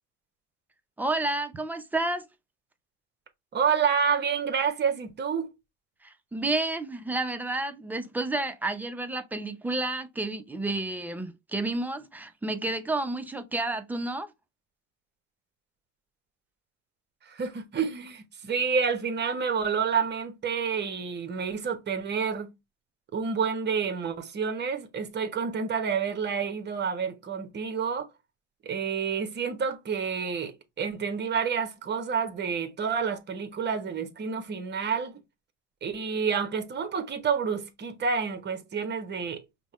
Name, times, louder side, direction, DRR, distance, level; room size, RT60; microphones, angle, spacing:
voice 1, 1.0-2.3 6.0-14.3, right 2 dB, 5° right, 0.5 m, -30 dB
voice 2, 3.5-5.5 17.3-22.5 23.1-28.1 28.6-35.2 35.8-39.4, right 6 dB, 30° right, 1.0 m, -29 dB
5.2 x 2.2 x 3.0 m
hypercardioid pair, 80°, 36 cm